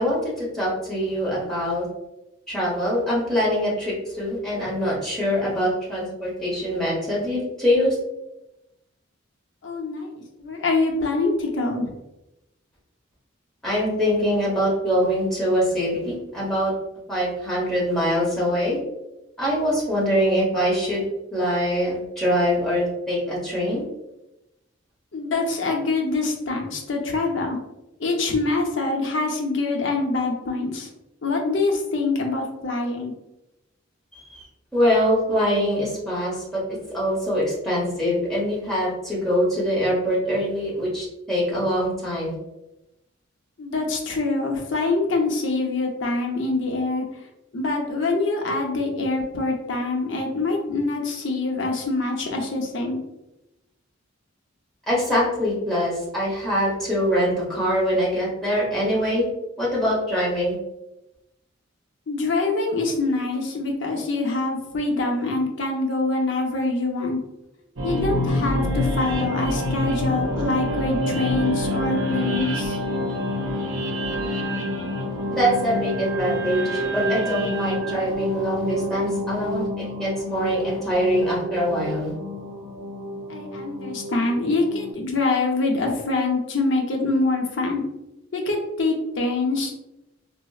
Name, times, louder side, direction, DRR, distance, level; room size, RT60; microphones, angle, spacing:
voice 1, 0.0-1.8 2.5-8.0 13.6-16.7 17.1-18.8 19.4-21.0 21.3-23.8 34.3-34.4 34.7-42.3 54.9-59.3 59.6-60.5 75.3-82.1, equal, ahead, -7 dB, 1.0 m, -23 dB
voice 2, 9.6-11.8 25.1-27.6 28.0-30.9 31.2-33.1 43.6-47.0 47.5-53.0 62.1-67.2 67.8-72.8 83.3-87.8 88.3-89.7, left 3 dB, 65° left, 1 dB, 0.6 m, -25 dB
sound 1, 67.8-84.9, left 1 dB, 70° right, 0.6 m, -27 dB
4.0 x 2.0 x 2.3 m, 0.93 s
head